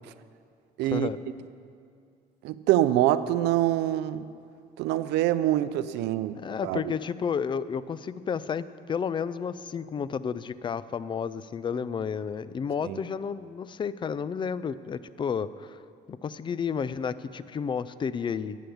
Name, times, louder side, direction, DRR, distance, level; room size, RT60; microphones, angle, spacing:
voice 1, 0.8-1.1 2.4-4.3 4.8-6.9 12.8-13.0, right 13 dB, 85° right, 14 dB, 0.5 m, -25 dB
voice 2, 6.3-15.8 16.1-18.6, left 6 dB, 30° left, 16 dB, 0.4 m, -31 dB
11.5 x 8.5 x 7.0 m, 2.4 s
cardioid pair, 110°, 17 cm